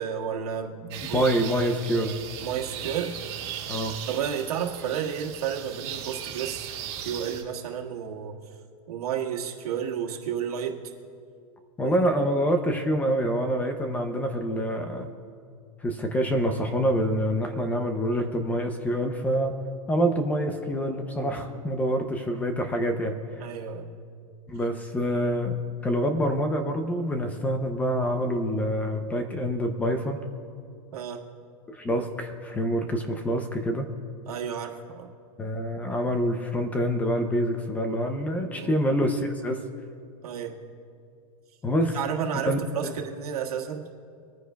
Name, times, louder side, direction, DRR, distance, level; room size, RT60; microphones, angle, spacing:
voice 1, 0.0-1.3 2.4-3.1 4.1-6.7 7.0-8.4 8.9-10.8 11.8-12.0 21.1-21.4 23.4-23.9 30.9-31.2 34.3-35.1 38.4-38.7 40.2-40.6 41.9-43.8, right 8 dB, 85° right, 0 dB, 1.7 m, -32 dB
sound 1, 0.9-7.4, right 9 dB, 45° right, 2.1 m, -37 dB
voice 2, 1.1-2.2 3.7-4.0 11.8-15.1 15.8-19.5 19.9-23.2 24.5-25.5 25.8-30.2 31.7-33.9 35.4-39.6 41.6-42.0 42.3-42.9, equal, 10° left, 6 dB, 0.5 m, -26 dB
25.5 x 9.6 x 2.3 m, 2.4 s
supercardioid pair, 165°, 19 cm